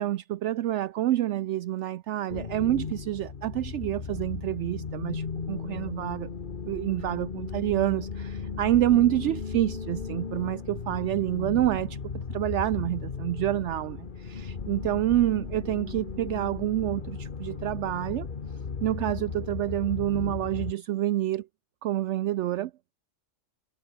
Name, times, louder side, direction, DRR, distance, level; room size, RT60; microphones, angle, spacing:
voice 1, 0.0-5.2 5.5-6.3 6.7-12.0 12.3-14.0 14.3-18.3 18.8-21.4 21.8-22.7, right 13 dB, 70° right, 0.8 m, -27 dB
sound 1, 2.3-20.7, left 5 dB, 45° left, 1.3 m, -36 dB
omnidirectional pair, 1.3 m